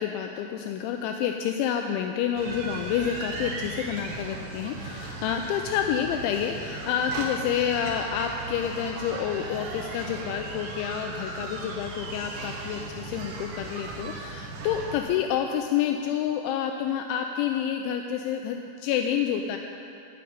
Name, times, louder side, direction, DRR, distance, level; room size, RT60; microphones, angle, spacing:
voice 1, 0.0-19.6, left 8 dB, 85° left, 4 dB, 2.7 m, -28 dB
sound 1, 2.4-15.0, right 3 dB, 70° right, 2.1 m, -37 dB
13.5 x 6.5 x 9.3 m, 2.7 s
omnidirectional pair, 5.9 m